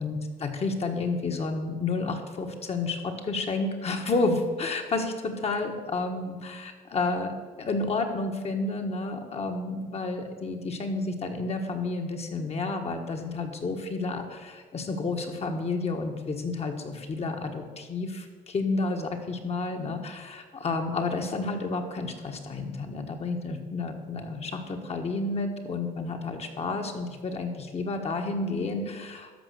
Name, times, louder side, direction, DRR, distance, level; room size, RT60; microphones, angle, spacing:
voice 1, 0.0-29.3, left 3 dB, 40° left, 4 dB, 1.6 m, -31 dB
13.0 x 5.5 x 7.0 m, 1.4 s
cardioid pair, 110°, 17 cm